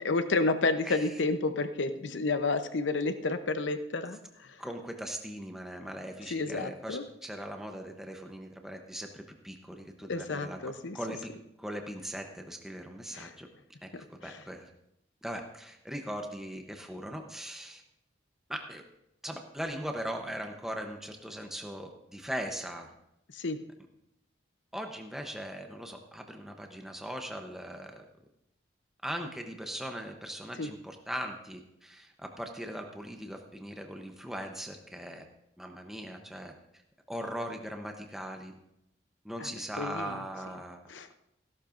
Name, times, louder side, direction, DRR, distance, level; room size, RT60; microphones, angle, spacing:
voice 1, 0.0-4.6 6.3-7.0 10.1-11.0 13.1-13.3 14.2-14.4 23.3-23.6 30.6-30.7 39.4-39.5 39.8-40.2 40.9-41.1, left 3 dB, 75° left, 9 dB, 0.8 m, -30 dB
voice 2, 4.6-11.3 11.6-13.5 13.8-14.7 15.2-17.8 18.5-18.8 19.2-22.9 24.7-28.0 29.0-35.3 35.6-36.5 37.1-38.5 39.2-40.8, equal, ahead, 3 dB, 0.8 m, -39 dB
16.0 x 12.0 x 2.6 m, 0.82 s
head